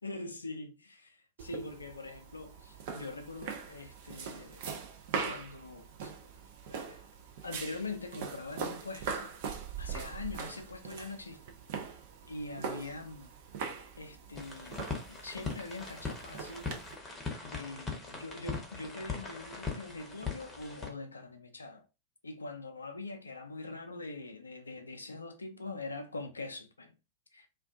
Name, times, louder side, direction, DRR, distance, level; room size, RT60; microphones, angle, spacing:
voice 1, 0.0-4.6 5.3-6.1 6.7-7.0 7.4-9.3 9.8-11.4 12.3-13.3 14.0-16.8 17.4-21.8 22.2-26.9 27.3-27.5, left 3 dB, 75° left, 0.4 m, -43 dB
sound 1, 1.4-17.0, right 5 dB, 50° right, 0.5 m, -42 dB
sound 2, 14.3-20.9, left 4 dB, 20° left, 0.8 m, -40 dB
2.4 x 2.2 x 2.4 m
figure-of-eight pair, 90°, 0 cm